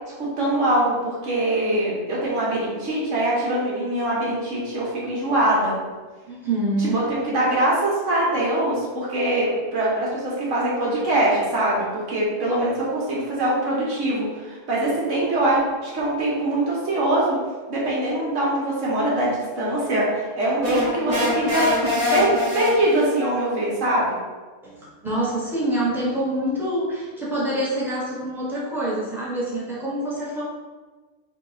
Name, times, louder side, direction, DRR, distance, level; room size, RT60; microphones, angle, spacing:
voice 1, 0.2-5.8 6.8-17.4 17.7-21.7 22.1-24.2, right 1 dB, 55° right, -5 dB, 1.5 m, -23 dB
voice 2, 6.3-7.0 24.6-30.4, right 1 dB, ahead, -8 dB, 1.0 m, -26 dB
sound 1, 20.6-23.2, left 1 dB, 30° right, 0.6 m, -24 dB
3.9 x 2.7 x 4.0 m, 1.3 s
omnidirectional pair, 1.6 m